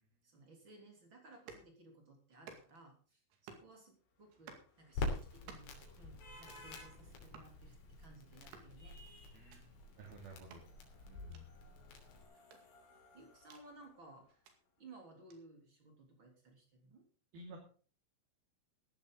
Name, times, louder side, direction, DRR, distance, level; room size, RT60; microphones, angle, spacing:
voice 1, 0.2-9.0 11.1-11.5 13.1-14.5 14.8-17.0, right 2 dB, 30° right, 2 dB, 3.5 m, -59 dB
sound 1, 1.3-1.7 2.3-2.9 3.3-3.7 4.3-4.7 5.3-5.8 6.3-6.7 7.3-7.5 8.3-8.7 9.3-9.6 10.3-10.6 11.3-11.4 12.3-13.7 14.3-14.6 15.3-15.4, right 6 dB, 75° right, 4.7 m, -57 dB
sound 2, 4.1-14.4, left 1 dB, 85° left, 6.7 m, -62 dB
Crackle, 4.9-12.2, left 2 dB, 70° left, 5.2 m, -46 dB
voice 2, 9.3-9.6 10.0-10.6 17.3-17.6, right 3 dB, 55° right, 1 dB, 4.0 m, -52 dB
15.5 x 12.0 x 4.0 m, 0.41 s
omnidirectional pair, 5.5 m